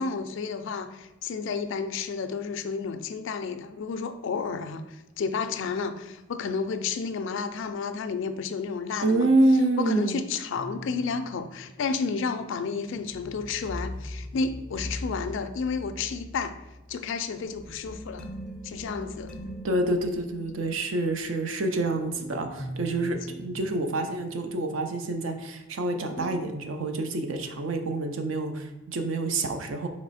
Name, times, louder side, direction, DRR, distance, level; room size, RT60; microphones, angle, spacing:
voice 1, 0.0-9.3 9.8-16.5 16.9-18.3 18.6-19.4, left 5 dB, 65° left, 9 dB, 0.4 m, -31 dB
voice 2, 9.0-10.2 19.6-29.9, right 2 dB, 70° right, 6 dB, 0.5 m, -27 dB
sound 1, 10.5-25.8 26.2-26.3, equal, 5° left, 0.5 m, -42 dB
4.1 x 3.1 x 4.0 m, 0.98 s
head